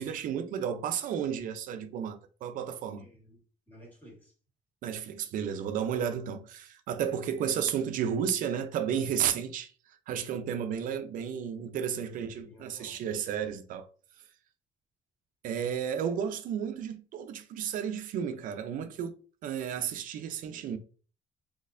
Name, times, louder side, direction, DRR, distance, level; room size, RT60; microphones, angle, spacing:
voice 1, 0.0-3.1 4.8-13.9 15.4-19.1 19.4-20.8, right 8 dB, 80° right, 0.5 m, -33 dB
voice 2, 3.0-3.4 3.7-4.3 12.1-13.0, equal, 15° left, 1.9 m, -54 dB
4.0 x 2.9 x 2.6 m
cardioid pair, 130°, 14 cm